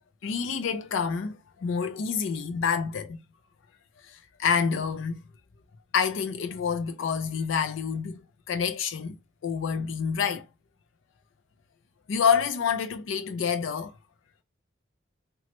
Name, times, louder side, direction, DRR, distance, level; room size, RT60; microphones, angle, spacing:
voice 1, 0.2-3.2 4.0-5.2 5.9-8.2 8.5-9.2 9.4-10.5 12.1-14.0, left 6 dB, 75° left, 0.4 m, -28 dB
2.9 x 2.1 x 2.9 m
head